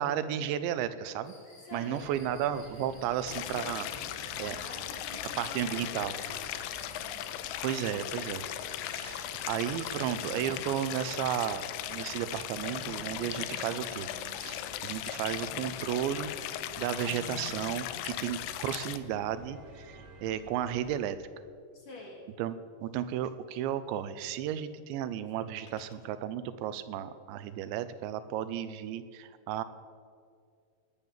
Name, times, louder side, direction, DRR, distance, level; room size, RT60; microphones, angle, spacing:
voice 1, 0.0-1.3 1.7-3.9 4.1-4.6 5.4-6.1 7.6-8.4 8.9-14.1 14.4-21.2 22.4-29.6, right 10 dB, 85° right, 13 dB, 3.0 m, -34 dB
sound 1, 1.2-11.2, left 1 dB, 30° left, 3.3 m, -56 dB
voice 2, 1.7-2.1 4.3-6.4 7.6-8.2 21.7-22.2, left 2 dB, 50° left, 0 dB, 2.5 m, -46 dB
sound 2, 2.0-21.0, right 2 dB, 35° right, 1.3 m, -52 dB
Stream, 3.3-19.0, left 13 dB, 80° left, 2.8 m, -38 dB
19.5 x 9.8 x 7.3 m, 2.2 s
omnidirectional pair, 5.2 m